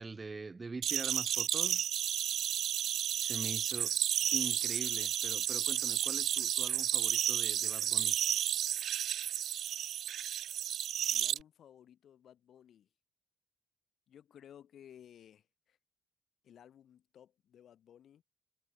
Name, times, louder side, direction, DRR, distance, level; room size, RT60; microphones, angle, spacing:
voice 1, 0.0-1.9 3.2-4.0 4.3-8.1, right 4 dB, 20° right, 0.9 m, -43 dB
sound 1, 0.8-11.4, right 10 dB, 60° right, 0.5 m, -32 dB
voice 2, 11.1-12.9 14.1-15.8 16.4-18.2, left 9 dB, 55° left, 5.2 m, -57 dB
cardioid pair, 150°, 0 cm